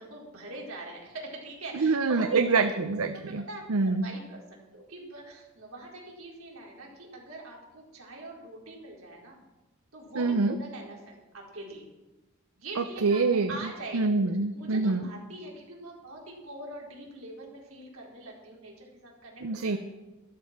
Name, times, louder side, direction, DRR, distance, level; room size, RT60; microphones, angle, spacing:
voice 1, 0.0-2.7 3.1-4.4 4.7-9.4 9.9-11.9 12.6-13.2 13.5-14.2 14.5-19.7, right 2 dB, 70° right, -2 dB, 4.2 m, -43 dB
voice 2, 1.7-3.4 3.7-4.0 10.2-10.6 12.8-13.6 13.9-15.1 19.4-19.8, right 4 dB, 90° right, 8 dB, 0.7 m, -25 dB
12.5 x 12.0 x 6.0 m, 1.1 s
head